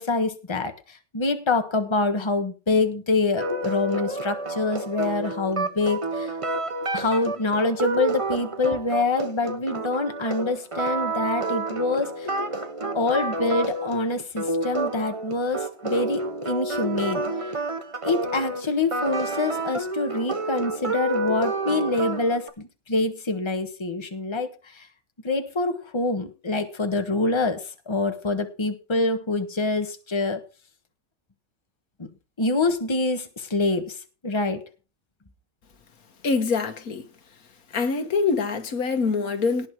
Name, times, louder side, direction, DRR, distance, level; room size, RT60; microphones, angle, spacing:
voice 1, 0.0-6.3 6.9-12.3 12.9-17.2 18.0-24.9 25.2-30.4 32.0-32.1 32.4-34.0 34.2-34.6, left 3 dB, 20° left, 1.3 m, -26 dB
sound 1, 3.4-22.5, right 2 dB, 25° right, 1.1 m, -29 dB
voice 2, 36.2-37.1 37.7-39.7, left 4 dB, 85° left, 1.9 m, -24 dB
18.0 x 6.3 x 4.7 m
omnidirectional pair, 1.5 m